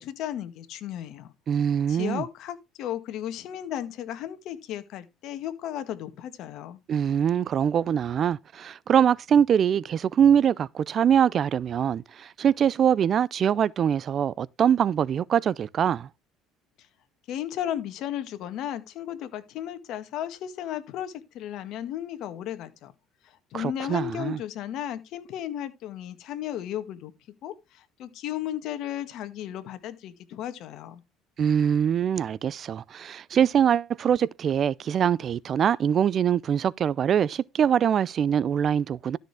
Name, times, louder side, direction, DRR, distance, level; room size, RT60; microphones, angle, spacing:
voice 1, 0.0-1.3 1.9-6.8 17.3-22.9 23.2-27.1 27.4-31.0, left 11 dB, 60° left, 1.8 m, -34 dB
voice 2, 1.5-2.2 6.9-16.1 23.5-24.4 31.4-39.2, right 8 dB, 40° right, 0.4 m, -23 dB
13.0 x 6.5 x 3.5 m
cardioid pair, 115°, 0 cm